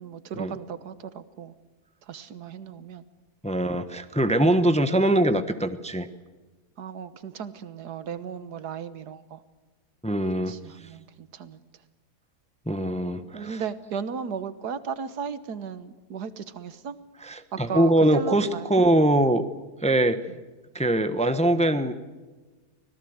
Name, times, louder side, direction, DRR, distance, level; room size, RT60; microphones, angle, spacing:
voice 1, 0.0-1.5 2.1-3.0 6.8-9.4 10.5-11.6 13.3-17.0 17.5-18.9 20.3-20.4, right 6 dB, 85° right, 13 dB, 1.7 m, -35 dB
voice 2, 3.4-6.1 10.0-10.5 12.7-13.6 17.2-19.4 19.8-20.2 20.7-21.9, right 1 dB, 5° left, 10 dB, 0.8 m, -22 dB
25.5 x 18.0 x 8.0 m, 1.3 s
omnidirectional pair, 1.7 m